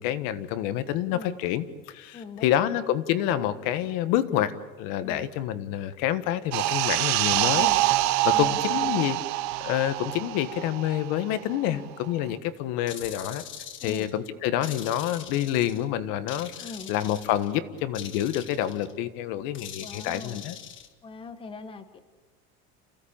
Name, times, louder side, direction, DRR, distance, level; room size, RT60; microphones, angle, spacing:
voice 1, 0.0-4.5 4.8-7.7 8.2-9.2 9.6-13.4 13.8-16.5 16.9-20.6, left 12 dB, 65° left, 12 dB, 1.5 m, -27 dB
voice 2, 2.1-2.7 5.0-5.3 7.5-7.8 8.3-9.1 11.6-11.9 13.8-14.1 16.6-16.9 19.8-20.4 21.0-22.0, left 4 dB, 15° left, 9 dB, 1.2 m, -41 dB
sound 1, 6.5-11.6 11.9-12.1, right 17 dB, 50° right, 0.8 m, -25 dB
sound 2, 12.9-14.2 14.6-15.8 16.3-17.5 17.9-18.9 19.5-20.9, left 9 dB, 35° left, 1.4 m, -42 dB
28.5 x 16.5 x 8.8 m, 1.3 s
cardioid pair, 170°, 36 cm